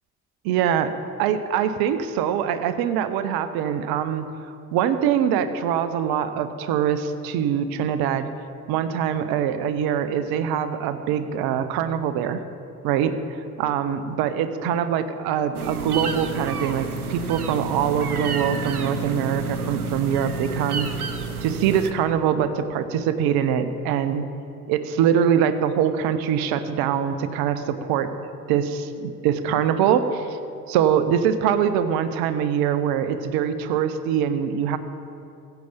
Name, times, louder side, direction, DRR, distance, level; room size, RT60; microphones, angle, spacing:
voice 1, 0.4-0.9 1.2-8.3 8.7-12.4 12.8-20.9 21.4-24.2 24.7-28.1 28.5-30.4 30.7-34.8, right 8 dB, 55° right, 11 dB, 0.9 m, -23 dB
sound 1, 15.5-21.9, right 4 dB, 85° right, 0.7 m, -30 dB
15.5 x 5.9 x 7.2 m, 2.6 s
figure-of-eight pair, 55°, 43 cm